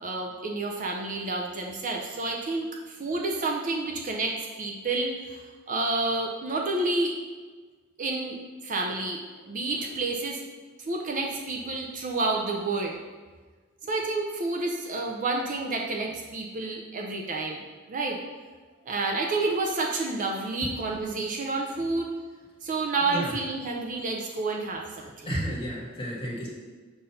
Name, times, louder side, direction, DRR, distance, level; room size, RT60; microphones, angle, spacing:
voice 1, 0.0-7.1 8.0-8.4 8.6-10.4 10.8-13.0 13.8-17.6 17.9-18.2 18.9-22.1 22.6-25.3, right 3 dB, 40° right, 0 dB, 0.6 m, -29 dB
voice 2, 23.0-23.3 25.2-26.5, equal, 25° left, -5 dB, 1.6 m, -32 dB
6.6 x 2.7 x 5.6 m, 1.4 s
head